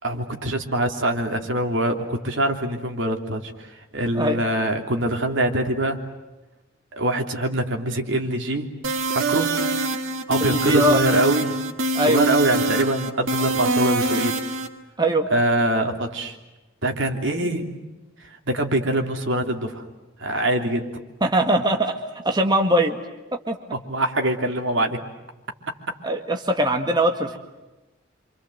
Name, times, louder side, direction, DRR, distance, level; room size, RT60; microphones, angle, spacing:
voice 1, 0.0-6.0 6.9-8.7 9.1-9.5 10.3-11.5 12.1-14.4 15.3-16.4 16.8-17.7 18.2-19.8 20.2-20.9 23.7-25.0, right 1 dB, 70° right, 4 dB, 3.2 m, -24 dB
sound 1, 8.8-14.7, right 3 dB, 90° right, 2.2 m, -24 dB
voice 2, 10.4-11.0 11.9-12.3 15.0-15.3 21.2-22.0 22.2-23.0 23.5-23.6 26.0-27.4, right 1 dB, 20° right, 4 dB, 1.7 m, -21 dB
28.0 x 26.5 x 7.9 m, 1.1 s
head